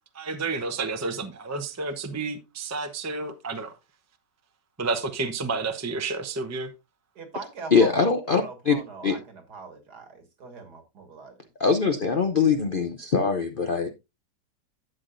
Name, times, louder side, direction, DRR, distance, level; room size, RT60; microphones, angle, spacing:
voice 1, 0.1-3.7 4.8-6.7, right 3 dB, 15° right, 0.6 m, -30 dB
voice 2, 7.2-11.3, right 4 dB, 65° right, 2.4 m, -41 dB
voice 3, 7.7-9.2 11.6-13.9, left 5 dB, 50° left, 0.6 m, -23 dB
12.0 x 8.0 x 2.6 m
omnidirectional pair, 1.9 m